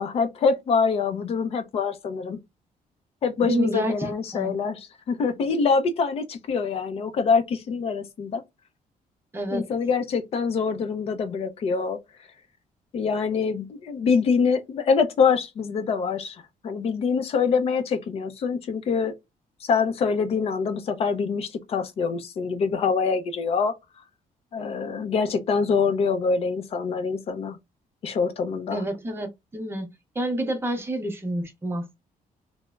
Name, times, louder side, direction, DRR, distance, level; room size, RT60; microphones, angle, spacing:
voice 1, 0.0-2.4 3.2-8.4 9.5-12.0 12.9-19.1 19.6-23.7 24.5-27.6 28.0-28.8, left 5 dB, 45° left, 0.5 m, -25 dB
voice 2, 3.4-4.6 9.3-9.7 28.7-29.9 30.1-32.0, right 1 dB, 15° right, 0.6 m, -28 dB
3.2 x 2.0 x 2.2 m
cardioid pair, 175°, 14 cm